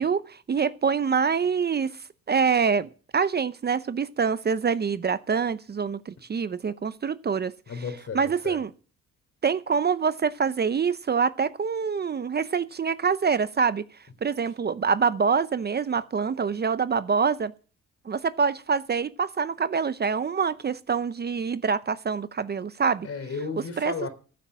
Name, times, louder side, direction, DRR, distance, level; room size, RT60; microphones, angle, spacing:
voice 1, 0.0-1.9 2.3-7.5 8.1-8.7 9.4-13.8 14.2-17.5 18.1-23.1 23.8-24.1, right 6 dB, 35° right, 0.7 m, -25 dB
voice 2, 7.7-8.6 23.0-24.1, left 5 dB, 50° left, 3.5 m, -34 dB
15.0 x 8.6 x 6.2 m
cardioid pair, 90°, 30 cm